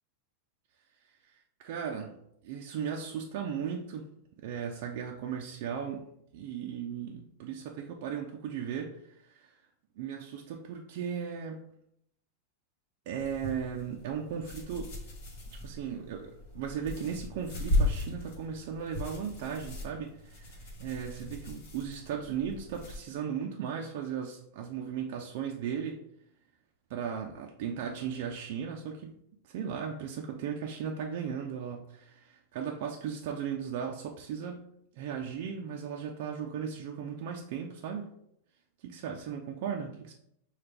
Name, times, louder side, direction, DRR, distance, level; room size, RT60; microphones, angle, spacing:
voice 1, 1.3-2.2 2.4-4.1 4.4-6.0 6.3-9.5 10.0-11.6 13.1-14.9 15.5-26.0 26.9-29.2 29.4-34.7 34.9-38.1 38.8-40.1, right 7 dB, 50° right, 1 dB, 0.5 m, -37 dB
sound 1, 13.2-23.0, left 1 dB, 60° left, 1.5 m, -36 dB
5.8 x 2.4 x 3.4 m, 0.74 s
supercardioid pair, 160°, 0 cm